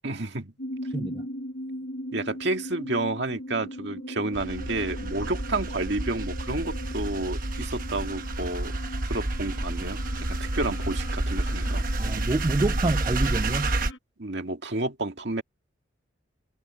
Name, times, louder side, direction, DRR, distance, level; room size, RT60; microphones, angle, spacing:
voice 1, 0.0-0.5 2.1-8.8 9.1-11.9 14.2-15.4, right 2 dB, 65° right, 2.1 m, -30 dB
sound 1, 0.6-14.0, equal, 70° left, 1.3 m, -39 dB
voice 2, 0.9-1.3 12.0-13.7, right 2 dB, 25° right, 0.3 m, -27 dB
sound 2, 4.3-13.9, right 2 dB, 45° right, 1.2 m, -30 dB
head